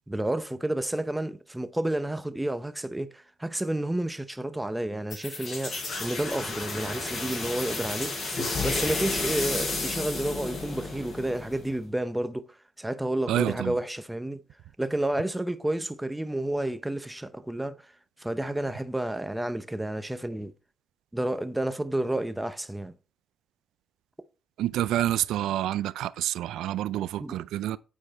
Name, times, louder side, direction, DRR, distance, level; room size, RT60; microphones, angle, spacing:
voice 1, 0.1-8.2 8.6-14.4 14.8-17.9 18.2-20.5 21.1-22.9 27.2-27.4, right 1 dB, 10° right, 0.8 m, -30 dB
sound 1, 5.1-11.7, left 3 dB, 45° left, 5.0 m, -32 dB
voice 2, 13.3-13.7 24.6-27.8, right 13 dB, 85° right, 0.4 m, -28 dB
9.0 x 4.8 x 4.2 m
cardioid pair, 90°, 0 cm